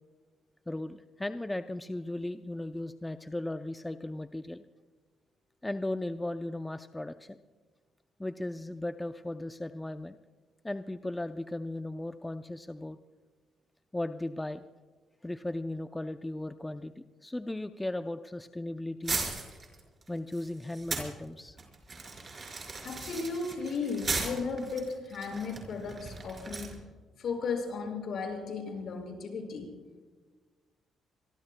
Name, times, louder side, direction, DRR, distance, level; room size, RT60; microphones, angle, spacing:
voice 1, 0.7-4.6 5.6-7.4 8.2-10.2 10.6-13.0 13.9-14.6 15.2-19.2 20.1-21.6, left 1 dB, 10° left, 8 dB, 0.5 m, -36 dB
sound 1, 19.0-21.1 21.6-26.8, right 3 dB, 35° right, 4.8 m, -37 dB
voice 2, 22.8-26.8 27.2-29.7, left 4 dB, 65° left, 2 dB, 6.0 m, -35 dB
26.5 x 22.5 x 2.3 m, 1.4 s
cardioid pair, 90°, 0 cm